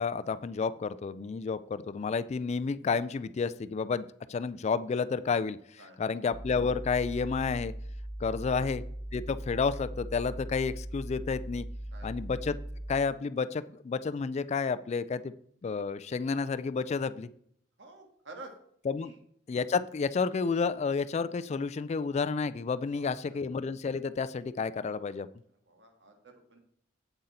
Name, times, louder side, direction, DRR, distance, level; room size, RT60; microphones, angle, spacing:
voice 1, 0.0-4.0 4.3-7.7 8.2-8.8 9.1-11.6 12.0-12.6 12.9-15.3 15.6-17.3 18.8-19.1 19.5-25.3, left 5 dB, 35° left, 14 dB, 0.3 m, -31 dB
sound 1, 6.3-13.1, right 1 dB, 85° left, 1.1 m, -40 dB
voice 2, 8.4-8.8 11.9-12.2 17.8-18.5 19.0-19.2 22.9-23.4 25.7-26.6, right 2 dB, 70° right, 4 dB, 1.8 m, -50 dB
8.0 x 7.7 x 4.2 m, 0.66 s
head